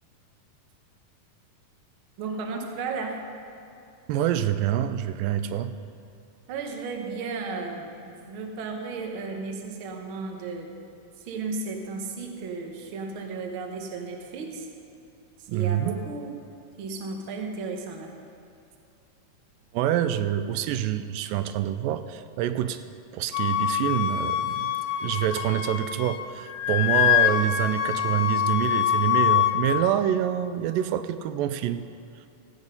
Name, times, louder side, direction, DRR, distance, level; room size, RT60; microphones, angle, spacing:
voice 1, 2.2-3.2 6.5-10.7 11.2-14.7 15.4-16.3 16.8-18.1, right 4 dB, 60° right, 2 dB, 1.4 m, -34 dB
voice 2, 4.1-5.7 15.5-15.9 19.7-22.8 23.1-24.7 25.0-31.8, right 11 dB, 90° right, 11 dB, 2.3 m, -26 dB
Wind instrument woodwind instrument, 23.3-26.2 26.5-29.6, left 11 dB, 80° left, 2.1 m, -24 dB
15.0 x 8.2 x 5.4 m, 2.7 s
omnidirectional pair, 3.9 m